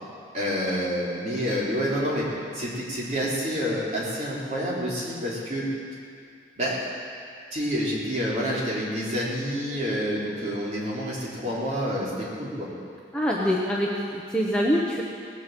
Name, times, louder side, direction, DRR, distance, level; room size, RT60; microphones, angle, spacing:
voice 1, 0.3-2.3 2.5-5.7 6.6-6.8 7.5-12.7, equal, 35° right, -7 dB, 3.7 m, -28 dB
voice 2, 13.1-15.0, equal, 5° left, -4 dB, 1.0 m, -25 dB
18.5 x 8.5 x 7.7 m, 2.4 s
head